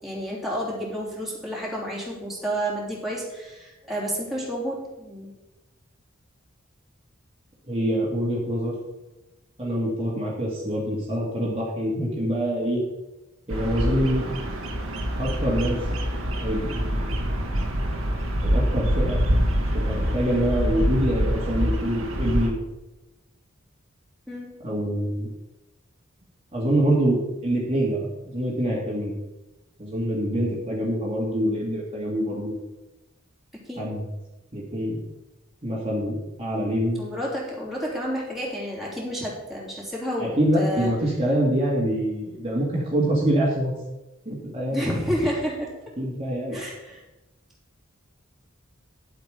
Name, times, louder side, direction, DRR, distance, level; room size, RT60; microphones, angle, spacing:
voice 1, 0.0-5.3 24.3-24.5 33.5-33.8 37.0-40.9 44.7-45.7 46.5-47.0, equal, ahead, -5 dB, 3.3 m, -30 dB
voice 2, 7.7-8.7 9.6-12.8 13.5-14.3 15.2-15.8 16.4-17.2 18.4-19.2 19.7-22.5 24.6-25.3 26.5-28.1 28.3-29.1 29.8-32.5 33.8-34.0 34.5-35.0 35.6-37.0 40.2-43.8 44.3-44.8 46.0-46.6, right 1 dB, 30° right, -5 dB, 2.1 m, -25 dB
Bird vocalization bird call bird song, 13.5-22.5, equal, 80° right, 2.0 m, -25 dB
10.5 x 7.9 x 5.1 m, 1.0 s
head